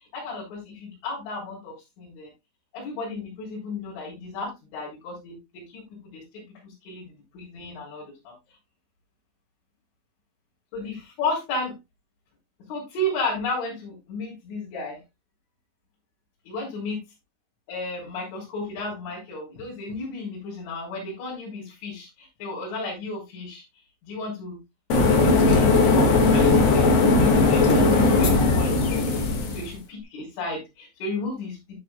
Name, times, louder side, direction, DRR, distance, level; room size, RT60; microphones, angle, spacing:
voice 1, 0.1-2.3 2.7-8.3 10.7-11.7 12.7-15.0 16.5-17.0 17.7-23.6 24.0-24.6 25.1-29.2 29.5-31.6, left 2 dB, 75° left, -6 dB, 6.3 m, -33 dB
sound 1, 24.9-29.7, left 3 dB, 60° left, 1.7 m, -18 dB
12.5 x 8.4 x 2.2 m, 0.21 s
omnidirectional pair, 5.6 m